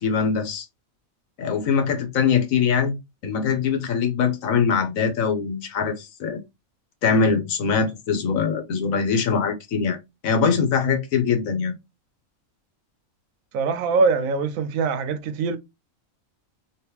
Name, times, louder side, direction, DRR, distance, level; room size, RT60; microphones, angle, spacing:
voice 1, 0.0-0.6 1.4-3.0 3.2-6.4 7.0-10.0 10.2-11.7, left 6 dB, 80° left, 1.3 m, -22 dB
voice 2, 13.5-15.6, right 4 dB, 85° right, 1.1 m, -23 dB
3.0 x 2.9 x 3.3 m
omnidirectional pair, 1.4 m